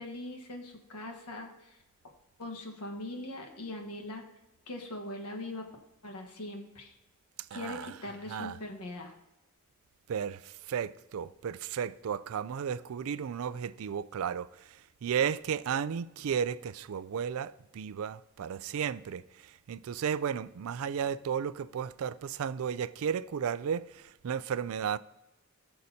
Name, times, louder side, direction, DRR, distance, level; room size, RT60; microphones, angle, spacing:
voice 1, 0.0-1.8 2.4-4.2 4.7-5.7 6.0-6.9 7.5-9.1, left 1 dB, 85° left, 1.3 m, -41 dB
voice 2, 7.5-7.9 8.3-8.6 10.1-14.5 15.0-19.2 19.7-25.0, right 7 dB, 65° right, 0.4 m, -33 dB
18.5 x 6.6 x 2.8 m
head